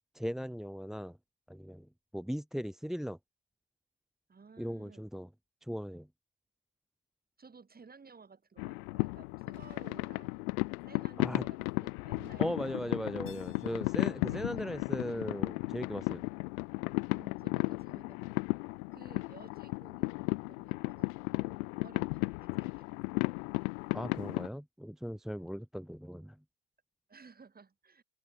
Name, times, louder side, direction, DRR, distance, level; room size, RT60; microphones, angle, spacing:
voice 1, 0.1-1.2 1.5-1.9 2.1-3.2 4.6-5.3 5.6-6.1 11.2-11.4 12.4-16.2 23.9-26.4, equal, ahead, 1.5 m, -38 dB
voice 2, 4.3-5.0 7.4-12.8 14.3-14.9 17.1-18.3 18.9-23.0 27.1-28.0, right 5 dB, 20° right, 4.2 m, -56 dB
sound 1, 8.6-24.5, left 28 dB, 65° left, 0.8 m, -35 dB
Keyboard (musical), 13.3-16.1, left 7 dB, 25° left, 5.0 m, -63 dB
hypercardioid pair, 90°, 46 cm